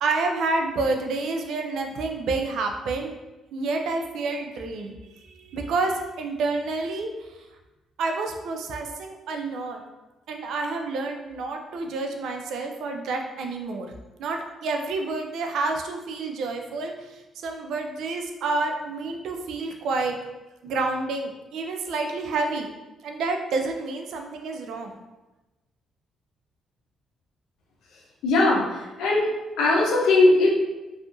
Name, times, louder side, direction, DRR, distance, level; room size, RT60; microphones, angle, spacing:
voice 1, 0.0-3.1 3.5-4.9 5.2-7.5 8.0-9.8 10.3-13.9 14.2-20.2 20.6-22.7 23.0-25.0, right 3 dB, 75° right, 3 dB, 0.3 m, -29 dB
voice 2, 28.2-29.3 29.6-30.5, left 2 dB, 85° left, -2 dB, 0.6 m, -19 dB
2.7 x 2.3 x 2.5 m, 1.1 s
cardioid pair, 90°, 0 cm